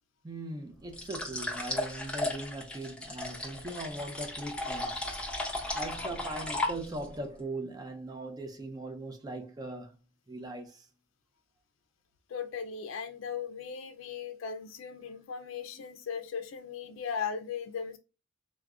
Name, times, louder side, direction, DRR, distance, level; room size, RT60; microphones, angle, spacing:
voice 1, 0.2-5.0 5.7-10.0 10.3-10.9, right 2 dB, 20° right, 0.4 m, -40 dB
sound 1, 0.9-7.1, left 2 dB, 5° left, 0.8 m, -35 dB
voice 2, 12.3-18.0, left 6 dB, 75° left, 0.4 m, -37 dB
4.5 x 2.1 x 2.3 m
head